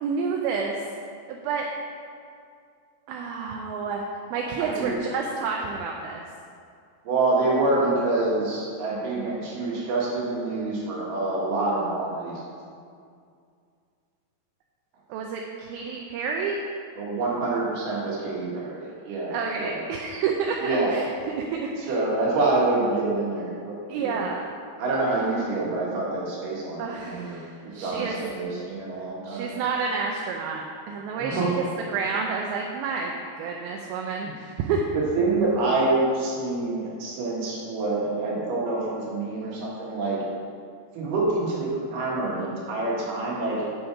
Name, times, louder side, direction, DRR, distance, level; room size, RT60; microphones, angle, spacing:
voice 1, 0.0-0.8 1.3-1.7 3.1-4.0 4.3-6.2 15.1-16.6 19.3-21.1 21.4-21.5 21.8-21.9 23.9-24.4 26.8-28.2 29.3-31.4 31.9-34.9, right 5 dB, 80° right, 0 dB, 2.3 m, -29 dB
voice 2, 4.6-5.0 7.0-12.4 17.0-19.8 20.6-20.9 21.9-24.3 24.8-29.5 31.1-31.6 34.2-34.3 34.9-40.2 40.9-43.6, right 2 dB, 60° right, -4 dB, 2.9 m, -26 dB
8.1 x 6.1 x 4.8 m, 2.3 s
omnidirectional pair, 4.6 m